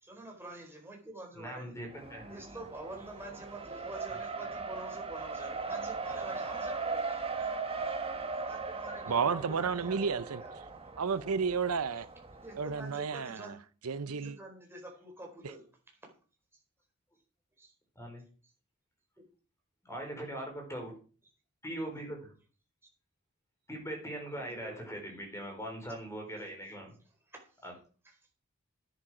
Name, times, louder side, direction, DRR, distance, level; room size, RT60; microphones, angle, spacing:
voice 1, 0.0-1.8 2.3-7.5 7.9-8.0 8.4-10.5 12.4-13.6 14.0-16.0 17.6-17.7 24.3-24.8 27.3-27.4, right 1 dB, 10° right, 4.6 m, -47 dB
voice 2, 1.3-2.6 18.0-18.2 19.8-20.9 21.6-22.2 23.7-26.9 27.6-27.7, right 1 dB, 15° left, 4.6 m, -41 dB
Race car auto racing, 1.9-12.9, right 4 dB, 25° right, 1.5 m, -39 dB
voice 3, 9.1-10.4 11.0-12.1 12.6-13.5 13.8-14.4, right 5 dB, 80° right, 0.7 m, -31 dB
10.5 x 10.0 x 5.0 m
head